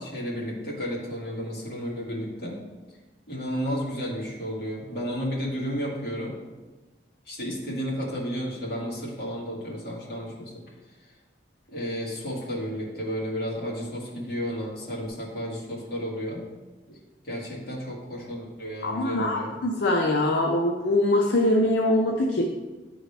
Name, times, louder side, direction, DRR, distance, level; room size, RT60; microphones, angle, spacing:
voice 1, 0.0-2.6 3.3-6.4 7.3-10.5 11.7-16.4 16.9-17.0 17.2-19.5, equal, 60° left, -5 dB, 1.9 m, -32 dB
voice 2, 18.8-22.4, left 1 dB, 80° left, 0 dB, 0.6 m, -23 dB
9.9 x 3.8 x 3.3 m, 1.2 s
head